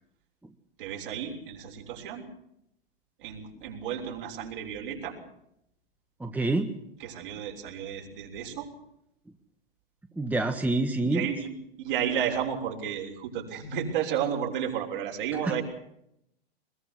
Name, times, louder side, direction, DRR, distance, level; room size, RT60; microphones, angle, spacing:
voice 1, 0.8-2.2 3.2-5.1 7.0-8.7 11.1-15.6, right 8 dB, 60° right, 0 dB, 6.5 m, -32 dB
voice 2, 6.2-6.7 10.2-11.3, right 2 dB, 5° right, 6 dB, 1.5 m, -26 dB
23.0 x 21.5 x 6.3 m, 0.77 s
hypercardioid pair, 100°, 30 cm